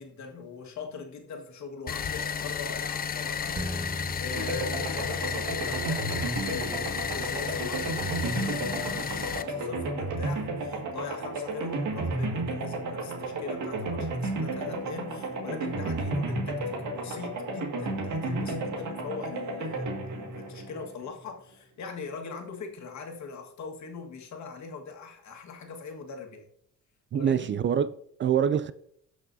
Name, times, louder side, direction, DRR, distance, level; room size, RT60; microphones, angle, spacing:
voice 1, 0.0-3.6 3.9-26.5 27.1-27.7, left 5 dB, 65° left, 1.7 m, -41 dB
sound 1, 1.9-9.4, left 7 dB, 30° left, 0.5 m, -33 dB
sound 2, 3.5-12.4 12.8-12.9, equal, 20° right, 1.3 m, -42 dB
sound 3, 4.4-21.3, right 2 dB, 75° right, 2.0 m, -32 dB
voice 2, 27.1-28.7, right 8 dB, 40° right, 0.4 m, -25 dB
18.0 x 6.1 x 2.7 m
cardioid pair, 90°, 30 cm